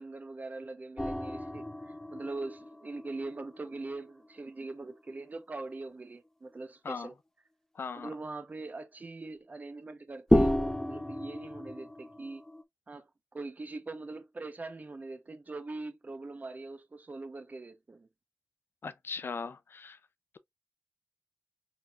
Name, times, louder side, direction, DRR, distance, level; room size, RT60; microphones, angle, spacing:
voice 1, 0.0-1.6 2.1-7.1 8.0-12.4 12.9-13.1 13.3-18.1, right 3 dB, 40° right, 0.9 m, -42 dB
sound 1, 1.0-4.5 4.7-4.8 10.3-12.6, left 1 dB, 10° left, 0.6 m, -31 dB
voice 2, 7.7-8.1 18.8-20.0, left 5 dB, 65° left, 0.6 m, -39 dB
4.4 x 3.7 x 2.5 m
wide cardioid pair, 70°, 4 cm